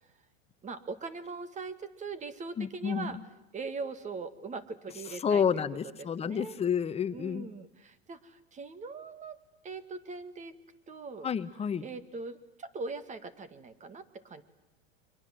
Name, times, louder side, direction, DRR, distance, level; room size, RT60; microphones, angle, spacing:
voice 1, 0.6-3.2 3.5-5.7 6.0-6.6 7.1-9.4 9.6-10.5 10.9-11.3 11.8-14.4, right 4 dB, 20° right, 13 dB, 1.8 m, -41 dB
voice 2, 2.6-3.2 5.2-7.5 11.2-11.8, left 7 dB, 20° left, 13 dB, 0.9 m, -30 dB
30.0 x 23.0 x 7.6 m, 0.91 s
supercardioid pair, 130°, 32 cm